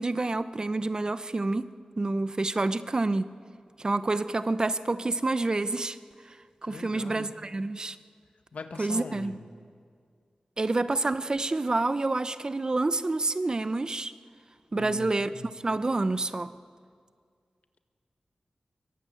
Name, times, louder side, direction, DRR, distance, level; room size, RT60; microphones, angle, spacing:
voice 1, 0.0-3.2 3.8-6.0 6.6-8.0 8.8-9.4 10.6-14.1 14.7-15.3 15.6-16.5, right 2 dB, 35° right, 0.8 m, -28 dB
voice 2, 6.6-7.3 8.5-9.4 14.7-15.5, left 4 dB, 80° left, 1.7 m, -41 dB
24.0 x 23.0 x 9.1 m
wide cardioid pair, 115°, 2 cm